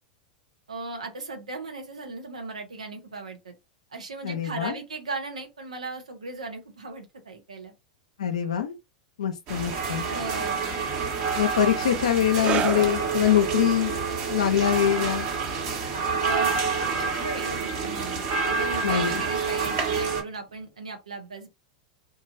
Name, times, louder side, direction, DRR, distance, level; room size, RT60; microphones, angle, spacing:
voice 1, 0.7-3.5 3.9-7.7 10.1-10.6 16.2-21.5, right 3 dB, 90° right, 0.7 m, -37 dB
voice 2, 4.2-4.8 8.2-8.7 9.2-10.0 11.3-14.0 14.3-15.3 18.8-19.2, left 9 dB, 80° left, 0.4 m, -24 dB
sound 1, 9.5-20.2, right 5 dB, 50° right, 1.2 m, -28 dB
sound 2, 12.4-19.4 19.6-19.9 20.6-20.7, right 7 dB, 35° right, 0.5 m, -35 dB
3.0 x 2.4 x 2.5 m
hypercardioid pair, 95°, 4 cm